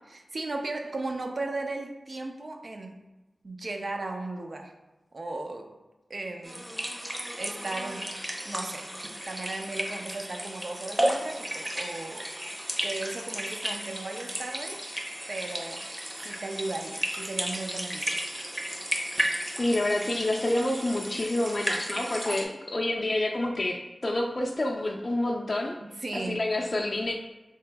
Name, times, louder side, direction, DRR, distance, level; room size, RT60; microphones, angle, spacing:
voice 1, 0.1-3.0 3.4-4.7 5.1-5.7 6.1-6.9 7.4-8.1 8.4-8.9 9.3-12.3 12.8-14.8 15.3-15.9 16.2-18.2 26.0-26.4, right 2 dB, 60° right, 3 dB, 0.5 m, -36 dB
sound 1, 6.4-22.5, right 1 dB, 20° right, 0.7 m, -33 dB
voice 2, 19.6-25.8 26.1-27.1, left 1 dB, 45° left, -2 dB, 0.4 m, -28 dB
3.8 x 2.9 x 3.4 m, 1.1 s
wide cardioid pair, 60°, 0 cm